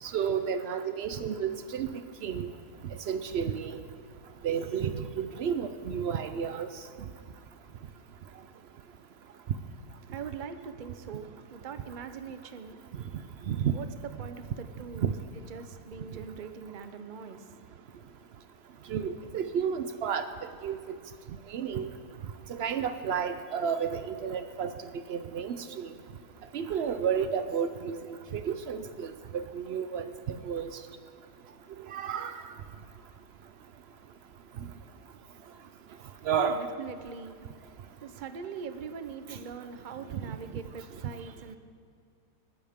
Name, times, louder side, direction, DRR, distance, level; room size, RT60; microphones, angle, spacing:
voice 1, 0.0-1.9 2.2-2.5 3.1-3.8 4.4-6.7 13.5-13.7 15.0-15.1 18.9-21.0 21.5-21.9 22.5-24.7 25.1-25.9 26.5-27.9 28.3-30.8 31.9-32.4 36.2-36.7 39.3-39.4, right 7 dB, 90° right, 10 dB, 0.5 m, -31 dB
voice 2, 10.0-13.0 13.7-18.1 35.3-41.6, right 6 dB, 45° right, 9 dB, 0.6 m, -43 dB
20.5 x 14.0 x 3.6 m, 2.3 s
omnidirectional pair, 1.8 m